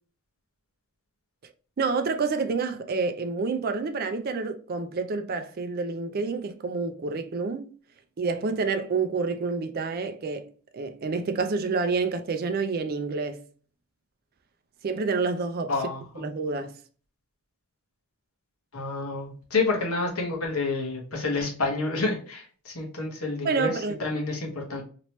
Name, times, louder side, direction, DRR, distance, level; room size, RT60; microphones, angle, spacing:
voice 1, 1.8-7.7 8.2-13.4 14.8-15.7 16.2-16.8 23.4-24.0, right 4 dB, 40° right, 0.4 m, -28 dB
voice 2, 15.7-16.2 18.7-24.8, left 3 dB, 70° left, 1.1 m, -29 dB
3.0 x 2.9 x 3.1 m
head